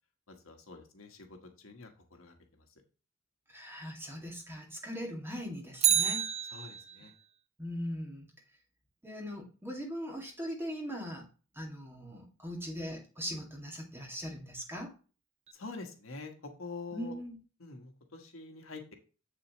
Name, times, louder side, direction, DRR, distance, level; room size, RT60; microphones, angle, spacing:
voice 1, 0.3-2.6 6.5-7.1 15.5-17.1 17.6-18.9, left 3 dB, 80° left, 4 dB, 1.4 m, -46 dB
voice 2, 3.5-6.2 7.6-8.3 9.0-11.3 11.5-14.9 16.9-17.4, equal, 10° right, -1 dB, 2.0 m, -40 dB
Bicycle, 5.7-7.1 15.5-15.6, right 9 dB, 30° right, 0.6 m, -29 dB
7.4 x 6.7 x 3.0 m, 0.35 s
head